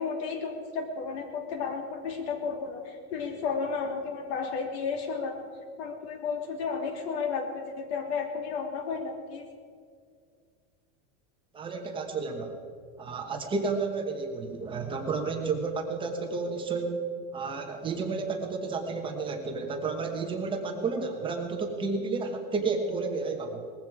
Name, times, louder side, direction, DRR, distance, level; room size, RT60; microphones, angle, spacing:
voice 1, 0.0-5.4 5.8-9.5, left 5 dB, 75° left, 4 dB, 2.9 m, -33 dB
voice 2, 11.5-12.6 13.0-17.0 17.3-23.7, right 4 dB, 15° right, 3 dB, 1.1 m, -31 dB
19.5 x 15.0 x 4.8 m, 2.2 s
supercardioid pair, 180°, 31 cm